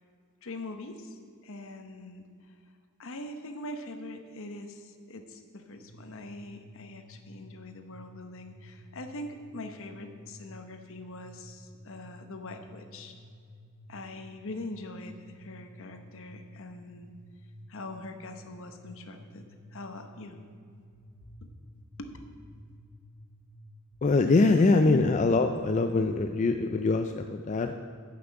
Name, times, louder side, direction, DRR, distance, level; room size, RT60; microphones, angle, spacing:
voice 1, 0.4-2.6 3.0-13.1 13.9-17.1 17.7-19.4 19.7-20.4 21.4-21.5 22.0-22.1 24.6-25.1, left 2 dB, 65° left, 6 dB, 1.0 m, -42 dB
sound 1, 5.7-25.3, equal, 15° left, 2.8 m, -53 dB
voice 2, 24.0-27.7, left 3 dB, 35° left, 6 dB, 0.4 m, -23 dB
9.5 x 6.0 x 7.7 m, 2.2 s
head